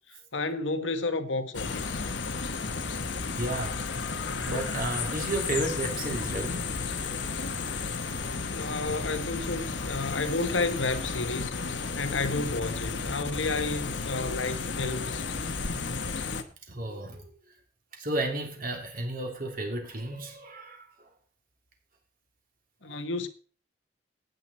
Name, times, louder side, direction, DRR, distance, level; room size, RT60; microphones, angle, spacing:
voice 1, 0.3-2.0 8.5-11.5 12.0-15.2 22.8-23.3, left 3 dB, 85° left, 1.4 m, -31 dB
sound 1, 1.5-16.4, left 4 dB, 70° left, 1.2 m, -33 dB
voice 2, 3.4-3.9 4.4-7.0 15.9-16.0 16.7-17.3 17.9-20.9 22.8-22.9, right 2 dB, 50° right, 3.3 m, -33 dB
14.5 x 9.4 x 4.4 m
head